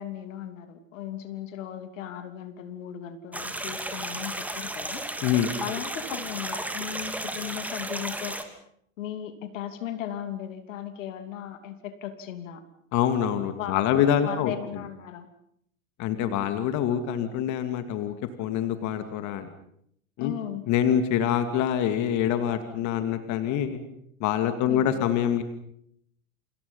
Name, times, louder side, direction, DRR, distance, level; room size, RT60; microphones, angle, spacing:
voice 1, 0.0-5.0 5.6-8.4 9.0-12.6 13.5-15.3 20.2-20.7 24.6-25.0, left 10 dB, 65° left, 9 dB, 3.0 m, -36 dB
sound 1, 3.3-8.4, right 1 dB, 5° right, 2.8 m, -34 dB
voice 2, 5.2-5.6 12.9-14.5 16.0-19.5 20.2-20.3 20.7-23.8 24.2-25.4, left 9 dB, 45° left, 9 dB, 2.5 m, -25 dB
29.0 x 26.5 x 5.6 m, 0.70 s
figure-of-eight pair, 90°, 41 cm